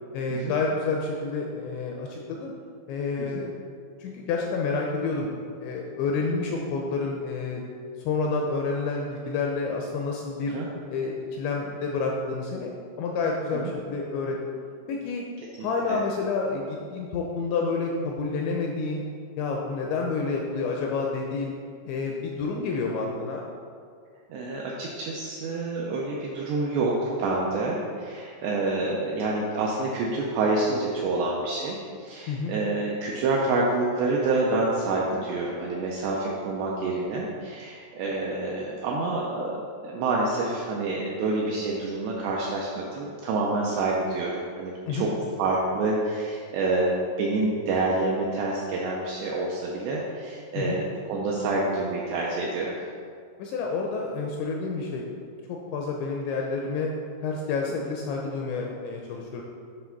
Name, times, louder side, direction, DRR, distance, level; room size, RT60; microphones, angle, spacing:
voice 1, 0.1-2.5 2.9-3.6 4.0-5.3 5.6-7.6 8.1-10.6 10.9-12.7 13.0-14.6 14.9-15.2 15.6-19.0 19.4-21.5 21.9-23.5 32.3-32.6 44.9-45.1 50.6-50.8 53.4-55.1 55.5-56.9 57.2-59.4, left 4 dB, 80° left, 0 dB, 2.6 m, -29 dB
voice 2, 15.6-16.0 24.3-45.1 45.4-52.8 57.8-57.9, right 2 dB, 80° right, -3 dB, 2.4 m, -27 dB
9.8 x 3.4 x 5.8 m, 2.2 s
omnidirectional pair, 5.7 m